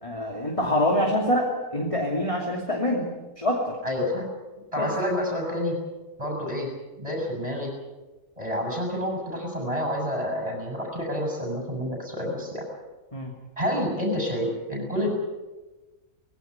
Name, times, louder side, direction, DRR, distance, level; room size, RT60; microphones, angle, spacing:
voice 1, 0.0-3.1 3.4-3.8 4.8-4.9 13.1-13.3, left 1 dB, 20° left, -1 dB, 2.9 m, -25 dB
voice 2, 3.8-4.3 4.7-5.8 6.2-6.7 7.0-7.7 8.4-12.7 13.6-15.1, left 1 dB, 20° right, 1 dB, 6.5 m, -28 dB
20.5 x 17.5 x 9.5 m, 1.2 s
omnidirectional pair, 1.5 m